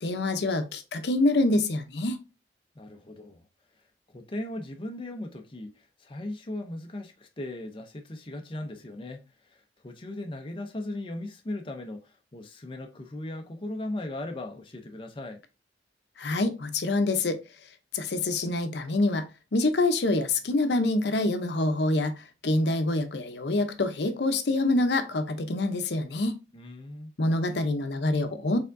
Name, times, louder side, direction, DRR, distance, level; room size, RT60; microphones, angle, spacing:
voice 1, 0.0-2.2 16.2-17.4 17.9-19.3 19.5-22.1 22.4-26.4 27.2-28.6, left 2 dB, 70° left, 0.7 m, -26 dB
voice 2, 2.8-3.5 4.1-15.4 26.5-27.1, left 1 dB, 30° left, 0.5 m, -38 dB
4.5 x 3.5 x 2.5 m
head